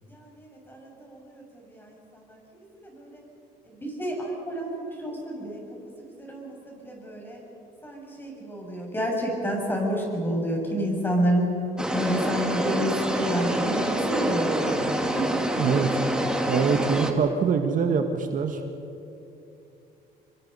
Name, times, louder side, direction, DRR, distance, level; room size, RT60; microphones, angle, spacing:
voice 1, 0.0-3.2 3.7-7.4 7.8-11.5 11.9-14.9 15.1-15.3, equal, 10° left, -1 dB, 7.5 m, -30 dB
sound 1, 11.8-17.1, right 1 dB, 5° right, 2.3 m, -26 dB
voice 2, 15.6-15.9 16.5-18.6, right 6 dB, 50° right, 5 dB, 1.6 m, -24 dB
27.0 x 23.5 x 5.6 m, 2.8 s
cardioid pair, 110°, 17 cm